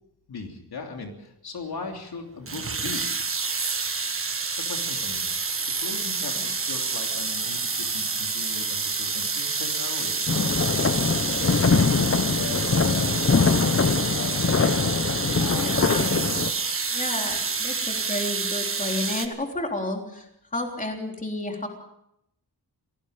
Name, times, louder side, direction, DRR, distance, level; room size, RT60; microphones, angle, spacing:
voice 1, 0.3-3.1 4.5-5.2 5.8-10.7 11.2-14.9 15.4-16.1, left 4 dB, 70° left, 2 dB, 3.1 m, -38 dB
sound 1, 2.5-19.3, right 4 dB, 35° right, 1.5 m, -28 dB
sound 2, 10.3-16.5, left 4 dB, 35° left, 1.0 m, -23 dB
voice 2, 15.5-16.1 16.9-20.3 20.5-21.7, left 2 dB, 20° left, 2 dB, 3.5 m, -31 dB
27.0 x 18.5 x 5.2 m, 0.78 s
wide cardioid pair, 165°, 40 cm